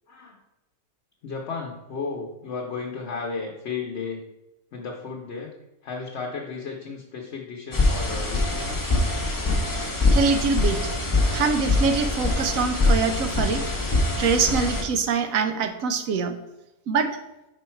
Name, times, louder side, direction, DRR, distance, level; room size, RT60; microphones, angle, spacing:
voice 1, 0.1-0.4 1.2-4.2 4.7-5.5 5.8-9.0 9.8-10.2 11.2-11.4, left 4 dB, 55° left, 1 dB, 1.0 m, -34 dB
sound 1, 7.7-14.8, left 2 dB, 15° left, 0.8 m, -23 dB
voice 2, 10.1-10.9 11.3-13.6 14.2-16.4 16.9-17.2, right 5 dB, 75° right, 8 dB, 1.1 m, -24 dB
5.5 x 5.0 x 4.4 m, 0.94 s
omnidirectional pair, 1.5 m